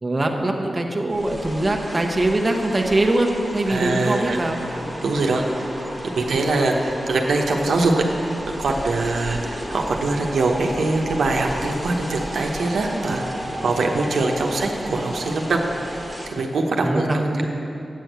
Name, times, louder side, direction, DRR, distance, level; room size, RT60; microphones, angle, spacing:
voice 1, 0.0-4.6 13.1-13.2 16.8-17.5, right 1 dB, 25° right, 1 dB, 0.9 m, -22 dB
sound 1, 1.1-16.3, equal, 10° left, 1.6 m, -33 dB
voice 2, 3.7-4.4 4.7-5.7 6.2-8.0 8.6-13.2 13.6-17.5, right 3 dB, 85° right, 1 dB, 0.9 m, -23 dB
8.4 x 6.2 x 8.0 m, 2.6 s
wide cardioid pair, 105°, 0 cm